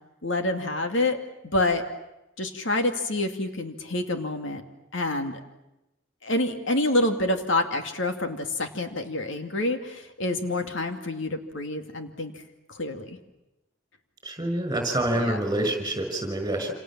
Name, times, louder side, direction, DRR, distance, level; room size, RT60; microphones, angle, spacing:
voice 1, 0.2-1.2 1.4-1.8 2.4-4.6 4.9-5.4 6.2-12.3 12.7-13.2 15.1-15.4, left 2 dB, 65° left, 6 dB, 2.4 m, -27 dB
voice 2, 14.2-16.7, right 1 dB, 20° right, 6 dB, 6.0 m, -27 dB
28.0 x 28.0 x 7.5 m, 0.93 s
head